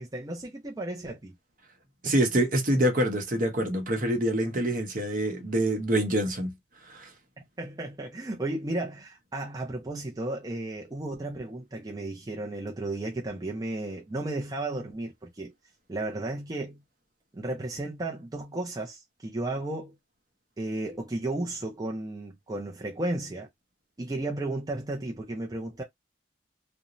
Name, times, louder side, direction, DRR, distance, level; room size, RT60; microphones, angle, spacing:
voice 1, 0.0-1.3 2.0-2.2 7.6-15.5 15.9-16.8 17.3-19.9 20.6-23.5 24.0-25.8, right 2 dB, 20° right, 0.5 m, -34 dB
voice 2, 2.0-6.5 6.9-7.1, right 1 dB, 50° right, 0.9 m, -26 dB
2.5 x 2.1 x 2.9 m
head